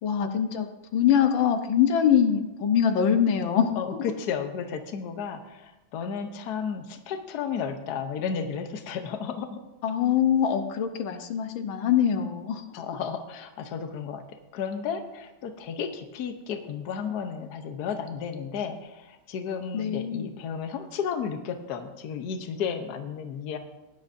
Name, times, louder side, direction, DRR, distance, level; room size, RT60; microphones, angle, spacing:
voice 1, 0.0-3.7 9.8-12.6 19.7-20.3, left 8 dB, 85° left, 6 dB, 1.7 m, -23 dB
voice 2, 3.8-9.6 12.7-14.2 14.5-23.6, left 6 dB, 60° left, 7 dB, 1.3 m, -33 dB
17.5 x 10.5 x 2.7 m, 0.99 s
omnidirectional pair, 2.1 m